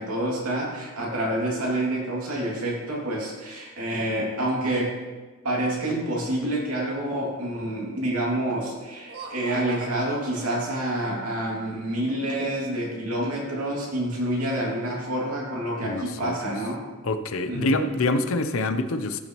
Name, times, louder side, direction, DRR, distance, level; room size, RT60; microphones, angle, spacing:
voice 1, 0.0-5.0 5.4-16.8 17.5-17.8, right 1 dB, 85° right, -3 dB, 2.5 m, -28 dB
Laughter, 8.9-11.3, right 3 dB, 45° right, 0.8 m, -43 dB
voice 2, 15.8-16.5 17.0-19.2, left 2 dB, 65° left, 9 dB, 0.6 m, -26 dB
14.5 x 6.0 x 3.1 m, 1.3 s
head